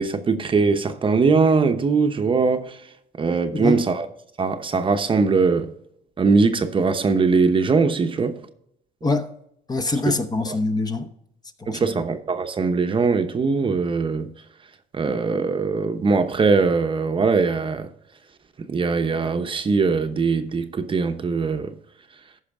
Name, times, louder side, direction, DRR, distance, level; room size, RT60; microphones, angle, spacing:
voice 1, 0.0-2.8 3.2-4.1 4.4-5.7 6.2-8.4 10.5-10.6 11.7-14.3 14.9-17.9 18.7-21.8, right 4 dB, 30° right, 0.9 m, -21 dB
voice 2, 3.5-3.8 9.0-9.3 9.7-11.1 11.6-11.9, left 2 dB, 25° left, 0.9 m, -24 dB
14.5 x 5.7 x 3.6 m
cardioid pair, 110°, 17 cm